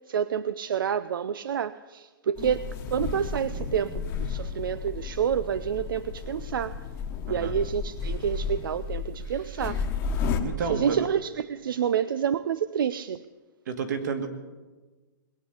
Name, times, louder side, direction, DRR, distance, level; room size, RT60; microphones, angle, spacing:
voice 1, 0.1-6.7 7.3-9.8 10.7-13.2, right 8 dB, 85° right, 15 dB, 0.5 m, -28 dB
sound 1, 2.4-10.4, left 5 dB, 20° left, 1.2 m, -33 dB
voice 2, 10.4-11.0 13.7-14.3, right 5 dB, 60° right, 5 dB, 2.3 m, -30 dB
20.5 x 8.8 x 8.0 m, 1.3 s
hypercardioid pair, 165°, 11 cm